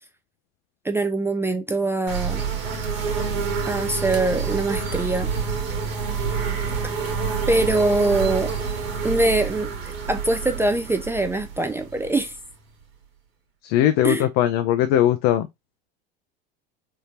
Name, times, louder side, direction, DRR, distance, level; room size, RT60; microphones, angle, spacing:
voice 1, 0.8-2.4 3.6-5.3 7.5-8.5 9.0-12.3 14.0-14.3, right 2 dB, 10° right, 0.3 m, -23 dB
sound 1, 2.1-12.7, right 5 dB, 80° right, 1.2 m, -28 dB
voice 2, 13.6-15.5, left 12 dB, 55° left, 0.5 m, -19 dB
3.6 x 2.6 x 2.8 m
hypercardioid pair, 85°, 30 cm